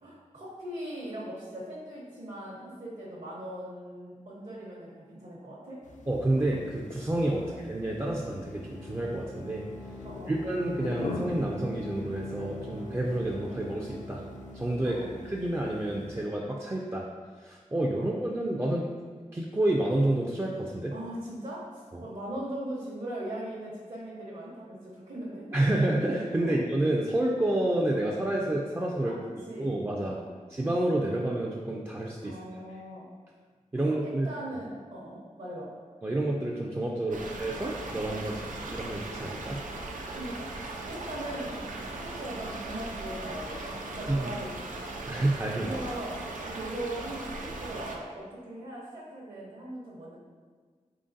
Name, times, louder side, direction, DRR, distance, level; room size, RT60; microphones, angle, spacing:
voice 1, 0.0-5.8 7.3-7.5 10.0-10.4 14.8-15.1 17.9-18.1 20.9-25.6 26.4-26.6 29.0-30.3 32.2-33.1 33.8-35.7 37.1-37.3 38.2-38.5 40.1-44.9 45.6-50.2, right 1 dB, 60° right, -7 dB, 0.8 m, -40 dB
sound 1, 5.8-16.2, left 3 dB, 70° left, 0.4 m, -43 dB
voice 2, 6.1-9.7 10.3-14.2 14.5-17.1 17.4-18.9 19.3-20.9 21.9-22.0 25.5-30.2 30.5-32.4 33.7-34.3 36.0-39.6 44.1-44.4 45.1-45.8, right 1 dB, 20° right, -3 dB, 0.3 m, -29 dB
Bowed string instrument, 7.9-15.7, left 2 dB, 90° left, 0.8 m, -44 dB
sound 2, 37.1-48.0, right 2 dB, 80° right, 0.4 m, -38 dB
3.7 x 3.6 x 2.6 m, 1.5 s
wide cardioid pair, 75°, 13 cm